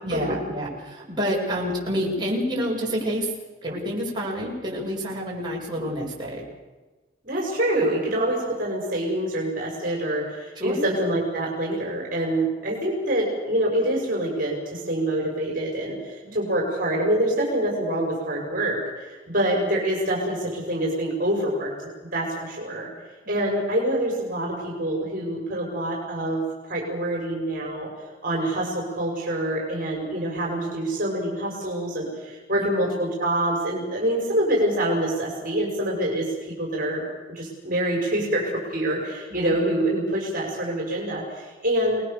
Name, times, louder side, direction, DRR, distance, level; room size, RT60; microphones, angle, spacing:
voice 1, 0.0-3.3 3.6-6.4 10.6-10.8 16.2-16.3 22.7-22.9 23.3-23.4 32.6-32.7 39.3-39.5, equal, 25° right, -4 dB, 7.9 m, -28 dB
voice 2, 7.2-21.7 22.0-22.9 23.2-26.4 26.7-27.9 28.2-42.0, right 1 dB, 50° right, -1 dB, 6.3 m, -26 dB
29.0 x 20.5 x 6.9 m, 1.3 s
head